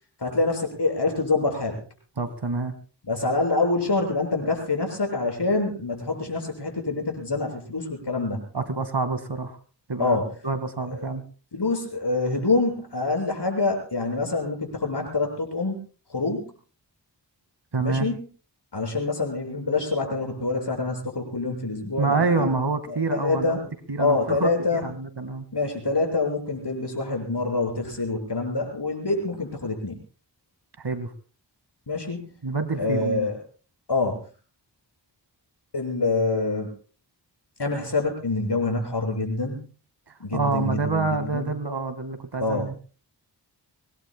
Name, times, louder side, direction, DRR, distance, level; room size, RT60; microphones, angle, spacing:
voice 1, 0.2-1.8 3.0-8.4 10.0-10.3 10.9-11.1 11.5-15.8 16.1-16.5 17.8-18.3 18.7-22.5 22.9-23.7 24.0-24.9 25.5-30.0 31.9-32.4 32.8-33.4 33.9-34.3 35.7-36.7 37.6-39.6 40.2-41.5 42.4-42.7, left 3 dB, 70° left, 2 dB, 7.4 m, -26 dB
voice 2, 2.2-2.8 8.5-9.6 9.9-10.2 10.4-11.2 17.7-18.1 22.0-23.6 23.9-25.4 30.8-31.1 32.4-33.3 40.3-42.8, right 3 dB, 70° right, 10 dB, 2.3 m, -27 dB
25.0 x 21.0 x 2.4 m, 0.38 s
wide cardioid pair, 75°, 42 cm